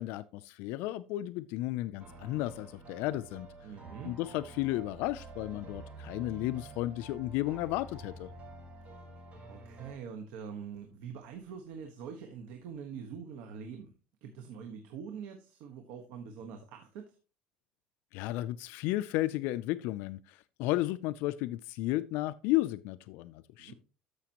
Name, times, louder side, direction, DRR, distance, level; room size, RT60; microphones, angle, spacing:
voice 1, 0.0-3.5 4.0-8.3 18.1-23.7, left 16 dB, 80° left, 14 dB, 0.4 m, -33 dB
sound 1, 2.0-9.9, right 3 dB, 40° right, 4.0 m, -49 dB
voice 2, 3.6-4.1 8.9-9.0 9.5-13.9 14.2-17.2 23.6-23.7, right 6 dB, 80° right, 5 dB, 1.3 m, -44 dB
13.0 x 5.8 x 2.9 m, 0.35 s
cardioid pair, 135°, 3 cm